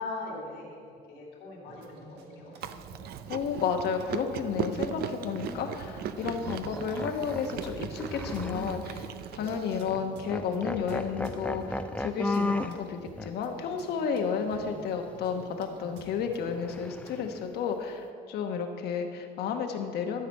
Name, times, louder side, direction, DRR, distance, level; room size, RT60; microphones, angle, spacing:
voice 1, 0.0-2.6 9.7-9.9, left 3 dB, 90° left, -2 dB, 3.2 m, -40 dB
sound 1, 1.7-17.2, right 2 dB, 90° right, 1.5 m, -50 dB
Chewing mastication, 2.6-9.8, right 9 dB, 65° right, 0.6 m, -38 dB
voice 2, 3.3-20.3, left 6 dB, 70° left, 4 dB, 1.2 m, -32 dB
sound 2, 5.3-5.6 6.2-9.1 9.4-9.6 9.9-10.0 10.3-12.8 13.2-13.3 16.5-17.4, left 2 dB, 5° left, 0.5 m, -35 dB
13.5 x 5.1 x 8.2 m, 2.3 s
cardioid pair, 110°, 17 cm